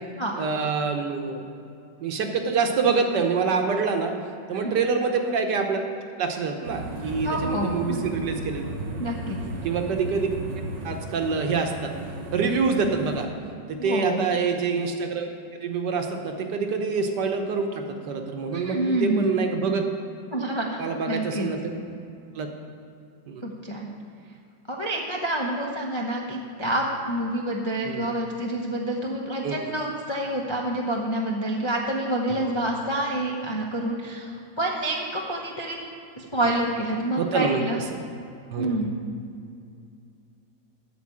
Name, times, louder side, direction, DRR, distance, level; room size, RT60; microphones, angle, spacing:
voice 1, 0.3-1.4 2.0-4.1 4.5-5.8 6.2-8.6 9.6-10.3 10.8-11.9 12.3-13.3 13.7-15.3 15.6-19.8 20.8-21.8 22.3-22.5 23.3-23.4 27.8-28.1 29.4-29.6 32.3-32.6 37.2-38.0 38.5-38.9, right 5 dB, 65° right, 4 dB, 1.4 m, -26 dB
voice 2, 4.5-4.8 7.2-8.0 9.0-9.4 13.8-14.3 18.5-19.3 20.3-21.5 23.4-23.9 24.7-35.8 36.2-37.8 38.6-39.0, right 1 dB, 30° left, -1 dB, 0.5 m, -28 dB
sound 1, 6.6-13.3, right 2 dB, 45° right, 1.3 m, -35 dB
8.4 x 6.7 x 8.5 m, 2.5 s
omnidirectional pair, 2.1 m